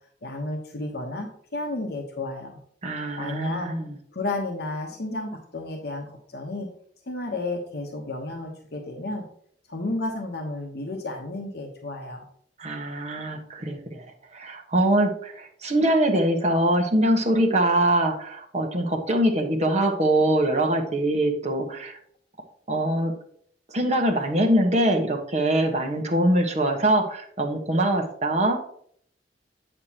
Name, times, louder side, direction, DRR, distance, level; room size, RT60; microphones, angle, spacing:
voice 1, 0.2-2.6 3.2-3.7 4.1-6.7 7.1-9.2 9.7-12.2, left 2 dB, 65° left, 2 dB, 1.1 m, -32 dB
voice 2, 2.8-4.0 12.6-14.1 14.3-22.0 22.7-23.1 23.7-28.6, right 1 dB, 40° right, 1 dB, 1.3 m, -23 dB
8.1 x 6.7 x 2.9 m, 0.62 s
head